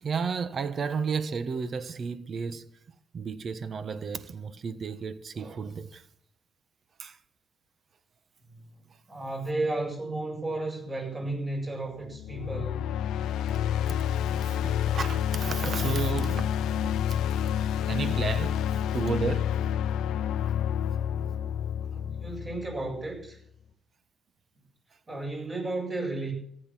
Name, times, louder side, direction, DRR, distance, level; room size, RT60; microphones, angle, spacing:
voice 1, 0.0-2.7 3.1-6.0 7.0-7.2 13.5-13.6 13.9-14.1 14.4-16.5 17.1-17.2 17.6-19.5, right 5 dB, 50° right, 1.2 m, -33 dB
voice 2, 9.1-12.9 21.9-23.4 25.1-26.3, right 2 dB, 30° right, 7.9 m, -33 dB
sound 1, 12.1-23.1, left 9 dB, 85° left, 0.7 m, -29 dB
14.5 x 10.5 x 7.6 m
cardioid pair, 90°, 0 cm